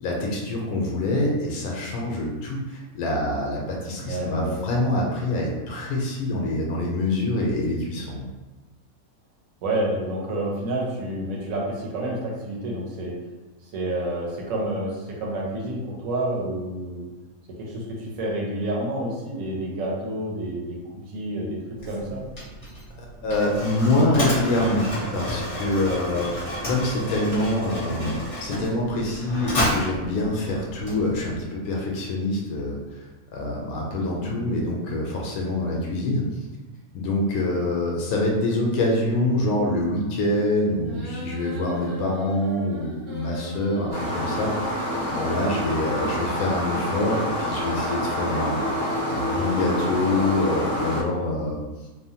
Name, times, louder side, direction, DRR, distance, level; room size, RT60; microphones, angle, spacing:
voice 1, 0.0-8.3 23.0-24.9 25.1-33.0 33.3-36.3 36.9-44.5 44.8-51.6, left 1 dB, 85° left, -1 dB, 1.0 m, -25 dB
voice 2, 4.0-4.7 9.6-13.1 13.7-17.1 17.6-20.8 21.1-21.6 21.8-22.2 34.1-34.3 46.0-46.1, right 1 dB, 70° right, -3 dB, 1.1 m, -29 dB
Mechanisms, 21.8-31.5, equal, 30° left, 1.0 m, -31 dB
sound 1, 40.8-43.9, left 1 dB, 55° right, 0.5 m, -38 dB
sound 2, 43.9-51.0, equal, 90° right, 1.2 m, -27 dB
3.1 x 2.0 x 2.7 m, 1.1 s
omnidirectional pair, 1.5 m